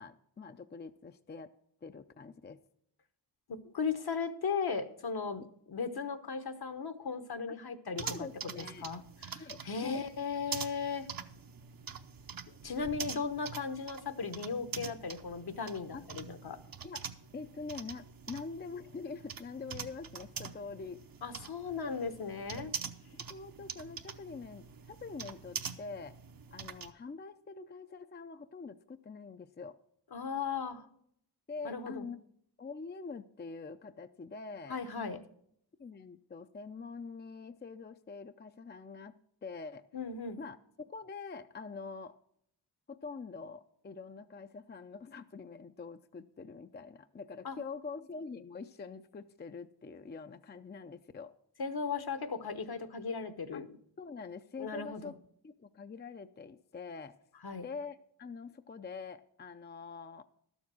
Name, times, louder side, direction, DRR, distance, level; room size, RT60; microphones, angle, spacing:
voice 1, 0.0-1.5 1.8-2.6 8.0-8.9 9.3-10.0 15.9-16.1 16.8-17.0 17.3-21.0 23.3-26.2 26.5-29.8 31.5-32.2 32.6-35.2 35.8-39.9 40.4-40.6 40.9-42.2 42.9-51.3 53.5-53.7 54.0-55.1 55.4-57.2 57.6-60.2, left 4 dB, 25° left, 9 dB, 0.5 m, -45 dB
voice 2, 3.5-5.4 5.7-8.3 8.6-11.1 12.6-16.6 21.2-22.7 30.1-30.9 31.6-32.0 34.7-35.2 39.9-40.4 47.4-47.6 51.6-53.7 54.6-55.1 57.4-57.6, left 5 dB, 60° left, 10 dB, 1.0 m, -37 dB
sound 1, 8.0-26.9, right 6 dB, 55° right, 0.8 m, -45 dB
12.0 x 7.2 x 6.1 m, 0.69 s
cardioid pair, 65°, 42 cm